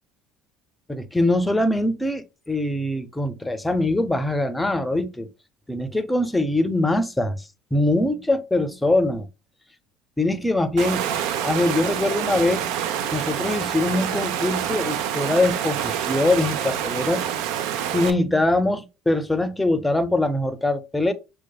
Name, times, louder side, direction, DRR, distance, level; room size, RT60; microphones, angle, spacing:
voice 1, 0.9-5.3 5.7-9.3 10.2-11.1 11.4-12.7 13.1-17.2 17.9-21.1, left 2 dB, 10° left, 0.6 m, -23 dB
Water, 10.8-18.1, right 9 dB, 70° right, 0.4 m, -27 dB
6.0 x 2.2 x 2.3 m
hypercardioid pair, 75°, 0 cm